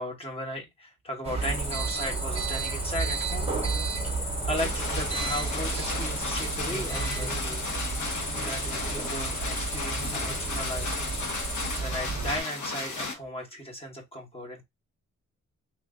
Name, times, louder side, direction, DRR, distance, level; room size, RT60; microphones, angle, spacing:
voice 1, 0.0-3.5 4.0-7.6 8.4-11.0 11.8-14.6, equal, 20° left, 1.1 m, -36 dB
sound 1, 1.2-12.4, right 4 dB, 20° right, 0.8 m, -32 dB
Cricket, 1.4-11.8, left 1 dB, 50° left, 1.4 m, -37 dB
sound 2, 4.6-13.1, left 3 dB, 70° left, 1.0 m, -35 dB
3.2 x 2.5 x 3.6 m
wide cardioid pair, 165°, 30 cm